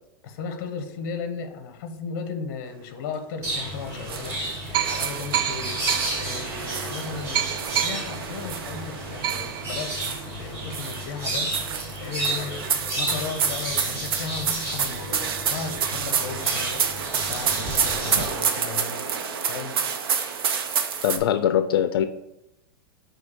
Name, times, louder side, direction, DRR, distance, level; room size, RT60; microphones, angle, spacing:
voice 1, 0.2-4.4 4.7-5.8 6.1-12.7 13.0-19.8, left 5 dB, 45° left, 7 dB, 0.9 m, -36 dB
sound 1, 3.0-3.1 4.0-4.1 4.7-13.9 14.3-14.4 14.6-19.2, right 10 dB, 65° right, 0.4 m, -34 dB
sound 2, 3.4-18.3, right 1 dB, 25° right, 1.4 m, -32 dB
sound 3, 4.1-4.5 4.8-10.4 10.7-21.2, right 7 dB, 85° right, 0.8 m, -29 dB
voice 2, 21.0-22.1, left 10 dB, 90° left, 10 dB, 0.4 m, -22 dB
7.8 x 2.9 x 4.5 m, 0.84 s
supercardioid pair, 170°, 12 cm